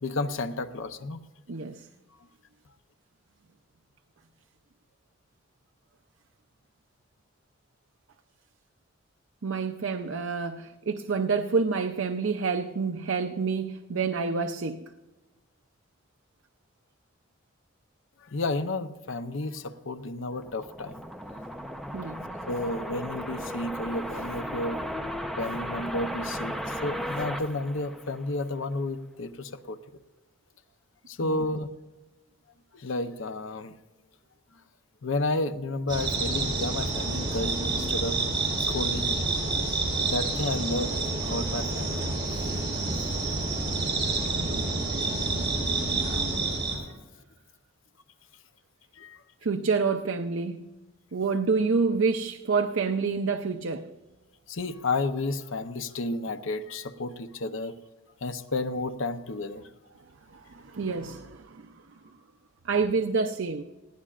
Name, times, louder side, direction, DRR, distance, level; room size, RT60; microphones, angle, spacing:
voice 1, 0.0-1.2 18.2-21.0 22.5-24.8 25.4-29.8 31.1-31.7 32.7-33.7 35.0-38.3 38.6-39.3 40.0-41.0 41.2-42.2 44.0-44.2 45.0-45.7 46.9-47.0 49.0-49.2 54.5-57.7 58.2-59.6, left 2 dB, 75° left, 0.7 m, -32 dB
voice 2, 1.5-1.9 9.4-14.9 21.9-22.3 31.2-31.4 44.0-44.6 49.4-50.7 51.1-53.9 60.3-61.8 62.6-63.6, right 4 dB, 75° right, 0.6 m, -28 dB
sound 1, 20.2-28.5, equal, ahead, 0.7 m, -36 dB
sound 2, 35.9-46.8, right 3 dB, 25° right, 5.9 m, -28 dB
20.0 x 16.0 x 2.5 m
head